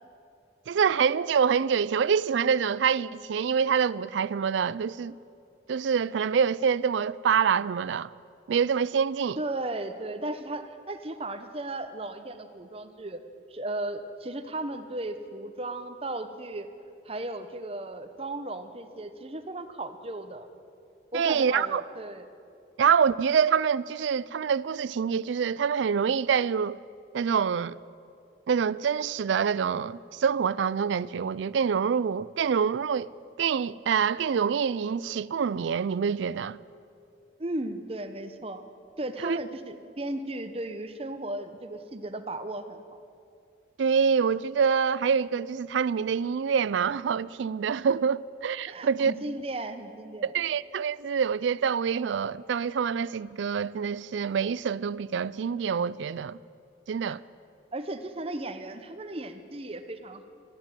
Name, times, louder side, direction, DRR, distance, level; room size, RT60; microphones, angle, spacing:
voice 1, 0.7-5.2 5.7-8.1 8.5-9.4 21.1-21.8 22.8-26.8 27.1-27.8 28.5-33.1 33.4-36.6 39.2-39.4 43.8-49.1 50.2-56.4 56.9-57.2, right 6 dB, 75° right, 0.4 m, -26 dB
voice 2, 9.4-13.2 13.5-16.7 17.1-20.5 21.1-22.3 37.4-38.6 39.0-43.0 48.7-50.3 57.0-57.1 57.7-60.3, right 2 dB, 30° right, 0.9 m, -35 dB
13.5 x 12.0 x 9.0 m
head